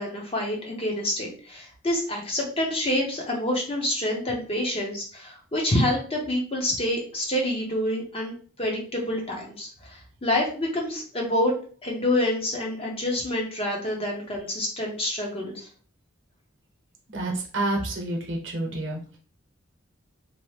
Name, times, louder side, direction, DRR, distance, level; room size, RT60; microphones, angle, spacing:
voice 1, 0.0-11.5 11.8-15.7, left 1 dB, 30° left, -1 dB, 0.7 m, -27 dB
voice 2, 17.1-19.0, right 2 dB, 60° right, 2 dB, 0.8 m, -28 dB
2.7 x 2.0 x 3.1 m, 0.41 s
head